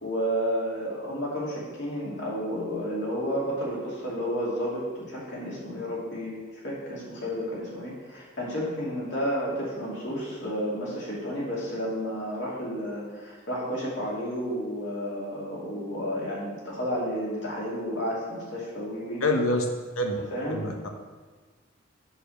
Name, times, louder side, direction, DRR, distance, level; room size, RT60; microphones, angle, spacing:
voice 1, 0.0-19.2 20.2-20.7, equal, 55° left, -5 dB, 2.7 m, -31 dB
voice 2, 19.2-19.6 20.0-20.2 20.5-20.9, left 1 dB, 80° left, 3 dB, 1.1 m, -26 dB
7.6 x 5.0 x 6.4 m, 1.4 s
head